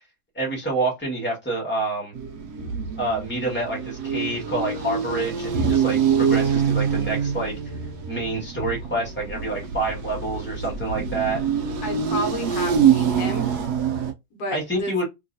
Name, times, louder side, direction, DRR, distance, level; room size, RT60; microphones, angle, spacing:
voice 1, 0.3-2.1 3.0-7.5 8.1-11.4 14.5-15.0, right 2 dB, 5° left, 1.3 m, -27 dB
sound 1, 2.1-14.1, right 7 dB, 70° right, 1.2 m, -25 dB
voice 2, 11.8-13.5 14.3-15.0, equal, 60° left, 1.4 m, -31 dB
3.0 x 3.0 x 2.6 m
omnidirectional pair, 1.9 m